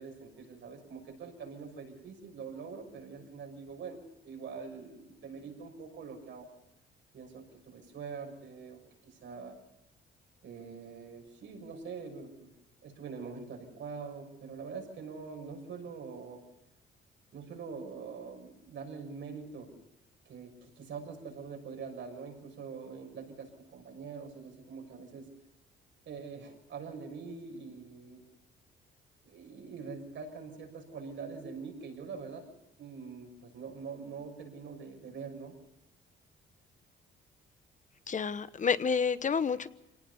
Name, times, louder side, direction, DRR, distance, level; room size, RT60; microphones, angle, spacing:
voice 1, 0.0-4.0 4.2-6.5 7.1-9.6 10.4-12.5 12.8-16.4 17.3-19.7 20.2-25.3 26.0-28.2 29.2-32.4 32.8-35.5, right 5 dB, 70° right, 3 dB, 6.7 m, -44 dB
voice 2, 38.1-39.7, left 6 dB, 40° left, 14 dB, 1.1 m, -29 dB
25.0 x 18.5 x 7.0 m, 0.88 s
cardioid pair, 90°, 20 cm